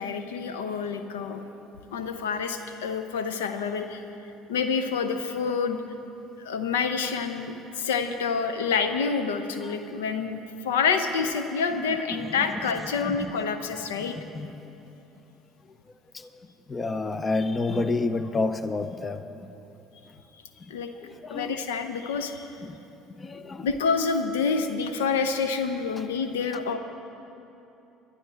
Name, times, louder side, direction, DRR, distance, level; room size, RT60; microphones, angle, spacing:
voice 1, 0.0-1.4 1.9-4.0 4.5-5.8 6.4-14.2 20.7-20.9 21.3-22.5 23.6-26.8, left 5 dB, 80° left, 8 dB, 0.7 m, -28 dB
voice 2, 16.7-19.2 21.0-21.6 22.6-22.8 23.2-23.7, left 3 dB, 30° left, 10 dB, 0.7 m, -29 dB
22.0 x 11.5 x 3.5 m, 3.0 s
hypercardioid pair, 65°, 0 cm